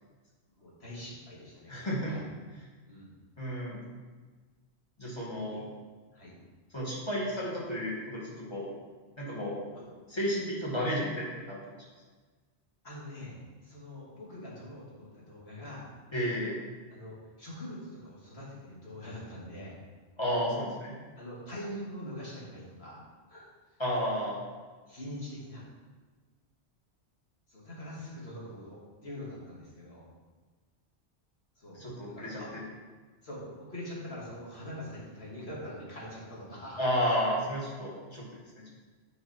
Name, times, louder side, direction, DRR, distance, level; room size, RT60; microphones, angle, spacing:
voice 1, 0.6-1.8 2.0-2.2 2.9-3.1 5.4-5.6 6.1-6.3 9.7-9.9 12.8-15.9 16.9-19.8 21.2-23.0 23.3-23.5 24.9-25.6 27.5-30.0 31.6-32.5 33.2-36.8, left 1 dB, 65° left, -6 dB, 2.6 m, -43 dB
voice 2, 1.7-2.1 3.4-3.8 5.0-5.6 6.7-8.7 9.2-9.6 10.1-11.6 16.1-16.6 20.2-20.9 23.8-24.4 31.7-32.4 36.8-38.2, equal, 25° left, -6 dB, 2.2 m, -32 dB
9.3 x 4.8 x 4.5 m, 1.4 s
omnidirectional pair, 1.2 m